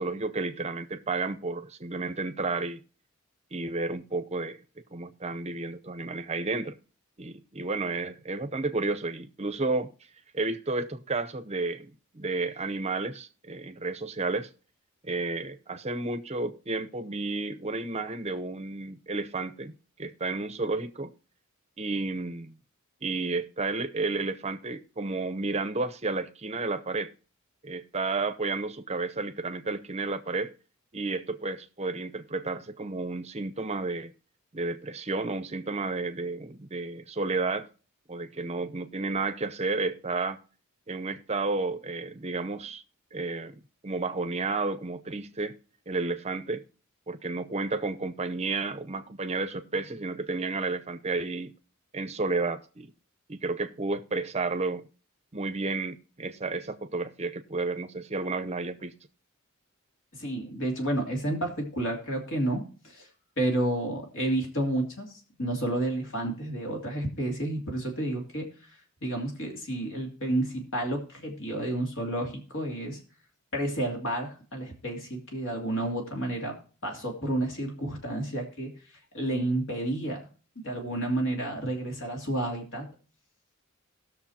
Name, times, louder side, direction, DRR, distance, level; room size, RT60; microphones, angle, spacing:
voice 1, 0.0-2.8 3.5-4.6 4.9-6.8 7.2-9.9 10.3-14.5 15.0-19.7 20.0-21.1 21.8-22.5 23.0-27.1 27.6-30.5 30.9-34.1 34.5-37.7 38.1-40.4 40.9-42.8 43.1-43.5 43.8-45.6 45.9-46.6 47.1-51.5 51.9-52.9 53.3-54.8 55.3-58.9, right 3 dB, 30° right, 0.8 m, -31 dB
voice 2, 60.1-63.1 63.4-65.1 65.4-68.5 69.0-73.0 73.5-76.6 76.8-78.7 79.1-80.3 80.6-82.9, right 1 dB, 60° left, 2.9 m, -30 dB
19.0 x 6.6 x 2.8 m
head